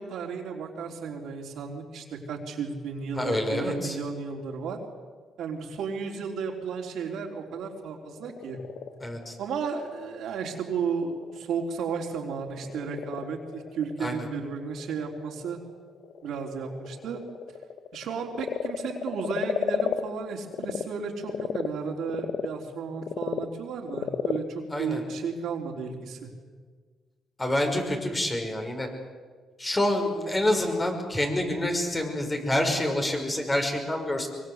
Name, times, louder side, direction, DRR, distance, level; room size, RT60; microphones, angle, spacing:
voice 1, 0.0-4.8 5.4-8.6 9.4-15.6 16.2-17.2 17.9-26.3, right 5 dB, 75° right, 1 dB, 3.8 m, -33 dB
voice 2, 3.2-4.0 9.0-9.3 14.0-14.2 24.7-25.0 27.4-28.9 29.6-34.3, left 1 dB, 20° left, 3 dB, 5.8 m, -27 dB
Frog, 8.0-20.8 21.2-25.8, left 8 dB, 70° left, 1.4 m, -35 dB
24.0 x 23.0 x 8.2 m, 1.5 s
cardioid pair, 90°, 0 cm